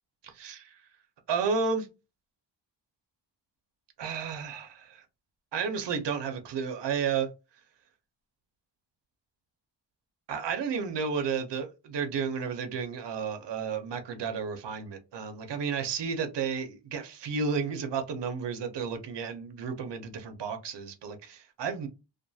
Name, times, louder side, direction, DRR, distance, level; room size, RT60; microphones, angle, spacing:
voice 1, 0.2-0.8 1.3-1.9 4.0-5.0 5.5-7.3 10.3-21.9, right 6 dB, 65° right, 0.6 m, -32 dB
2.4 x 2.3 x 2.6 m
wide cardioid pair, 145°, 46 cm